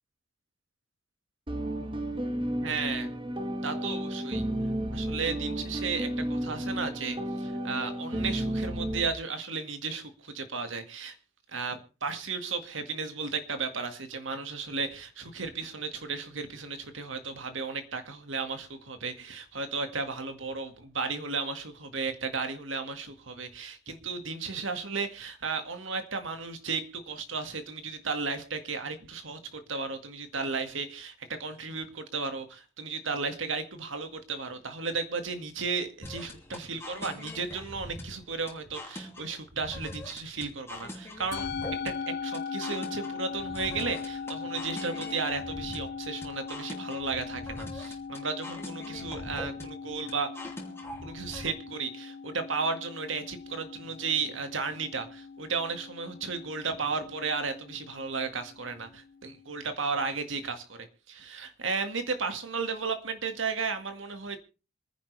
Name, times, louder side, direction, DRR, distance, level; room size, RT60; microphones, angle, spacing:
sound 1, 1.5-9.1, right 1 dB, 25° right, 1.5 m, -32 dB
voice 1, 2.6-3.1 3.6-4.4 4.9-11.2 11.5-31.1 31.4-41.5 41.8-41.9 42.2-50.3 51.0-64.4, right 4 dB, 70° right, 7 dB, 2.0 m, -34 dB
sound 2, 36.0-51.5, left 1 dB, 15° left, 2.6 m, -43 dB
Musical instrument, 41.3-59.8, left 5 dB, 50° left, 0.7 m, -40 dB
26.0 x 10.0 x 3.4 m, 0.34 s
head